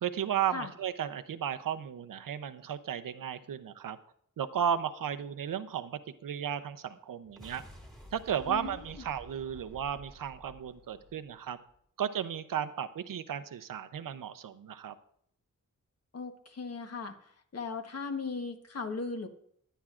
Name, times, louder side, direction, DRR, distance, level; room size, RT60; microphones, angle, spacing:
voice 1, 0.0-4.0 4.4-7.6 8.1-11.6 12.0-14.9, right 9 dB, 80° right, 11 dB, 0.7 m, -34 dB
sound 1, 7.2-11.8, equal, ahead, 2.0 m, -52 dB
voice 2, 8.5-9.0 16.1-17.1 17.5-19.3, left 4 dB, 50° left, 5 dB, 1.2 m, -37 dB
15.5 x 10.0 x 2.5 m, 0.67 s
wide cardioid pair, 165°, 32 cm